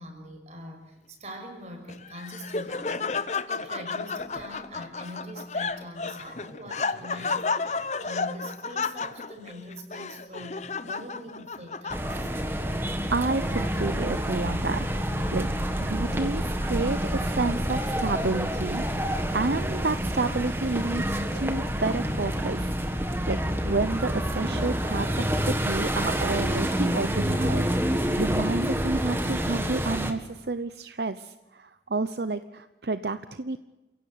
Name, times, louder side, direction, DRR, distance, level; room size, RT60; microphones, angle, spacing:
voice 1, 0.0-12.3, equal, 40° right, 4 dB, 5.9 m, -43 dB
Laughter, 1.9-12.4, left 4 dB, 40° left, 0.8 m, -32 dB
sound 1, 11.9-30.1, equal, 15° right, 1.8 m, -28 dB
voice 2, 13.1-14.9 15.3-15.5 15.8-22.8 23.3-23.4 23.6-33.6, right 3 dB, 70° right, 11 dB, 0.8 m, -30 dB
29.0 x 17.0 x 8.7 m, 1.0 s
head